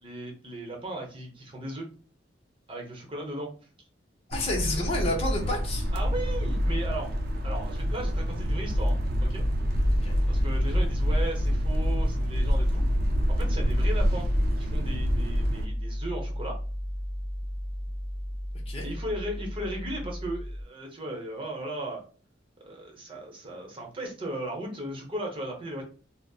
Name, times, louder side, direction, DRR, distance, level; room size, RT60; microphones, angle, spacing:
voice 1, 0.0-1.9 2.7-3.5 5.9-7.2 7.4-9.4 10.3-12.8 13.3-14.3 14.6-16.6 18.8-22.0 22.6-25.8, right 1 dB, 30° right, 0 dB, 0.9 m, -36 dB
voice 2, 4.3-5.9 9.9-10.1 18.7-18.9, left 2 dB, 35° left, -1 dB, 0.7 m, -30 dB
sound 1, 4.3-15.7, equal, 55° right, 0.6 m, -27 dB
Piano, 8.4-20.6, equal, 10° left, 0.9 m, -33 dB
4.0 x 2.0 x 2.3 m, 0.39 s
head